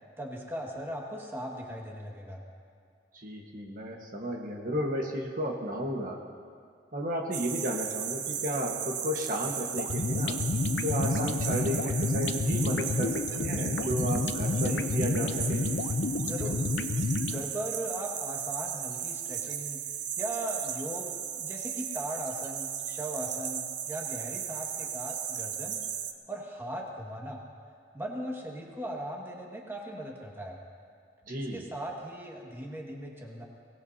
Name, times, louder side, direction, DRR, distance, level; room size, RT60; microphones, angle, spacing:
voice 1, 0.2-2.4 16.2-16.6 17.3-19.8 20.2-25.8 26.3-27.4 27.9-30.6 31.4-33.4, right 1 dB, 15° right, -1 dB, 1.7 m, -38 dB
voice 2, 3.1-6.2 6.9-10.4 10.8-15.7 31.3-31.7, equal, 50° right, 0 dB, 1.3 m, -33 dB
sound 1, 7.3-26.1, right 9 dB, 85° right, 0.8 m, -36 dB
sound 2, 9.8-17.4, left 3 dB, 75° left, 0.6 m, -30 dB
23.0 x 18.5 x 2.8 m, 2.3 s
head